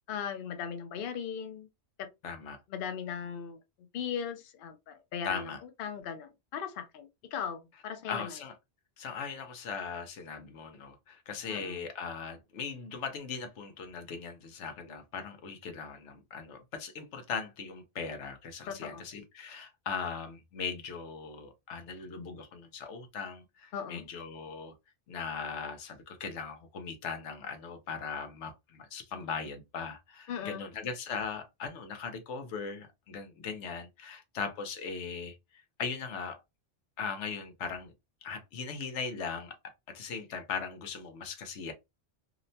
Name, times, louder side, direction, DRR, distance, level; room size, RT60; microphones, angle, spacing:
voice 1, 0.1-1.7 2.0-2.1 2.7-3.6 3.9-8.4 11.5-11.8 18.7-19.0 23.7-24.1 30.3-30.6, left 7 dB, 60° left, 0.7 m, -38 dB
voice 2, 2.2-2.6 5.2-5.6 8.1-8.6 9.0-24.7 25.1-35.4 35.8-36.4 37.0-37.9 38.2-41.7, left 5 dB, 80° left, 1.0 m, -39 dB
2.8 x 2.1 x 2.6 m
omnidirectional pair, 1.2 m